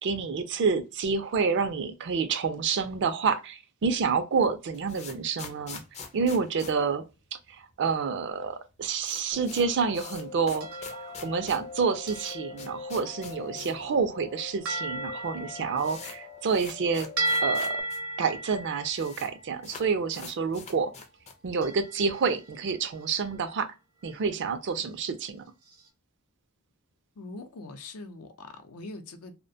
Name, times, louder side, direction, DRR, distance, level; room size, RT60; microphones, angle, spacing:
voice 1, 0.0-5.8 6.1-7.0 7.3-10.7 11.2-17.1 17.4-17.8 18.2-20.9 21.4-23.7 24.0-25.4, right 5 dB, 55° right, 0.4 m, -28 dB
sound 1, 4.5-7.7 8.0-8.1 8.3-8.4 8.7-13.9 14.2-14.3 15.0-15.1 15.3-18.0 18.3-18.4 18.6-19.3 19.6-21.5, left 5 dB, 30° left, 0.4 m, -45 dB
sound 2, 9.3-17.8, left 5 dB, 50° left, 0.8 m, -44 dB
sound 3, 10.6-11.7 12.1-12.7 14.7-16.8 17.2-20.3 21.6-22.7 23.0-23.5 24.0-24.2 24.6-24.8 25.7-25.8, right 2 dB, 75° right, 0.8 m, -35 dB
voice 2, 27.2-29.3, left 2 dB, 80° left, 0.5 m, -42 dB
2.4 x 2.1 x 2.6 m
head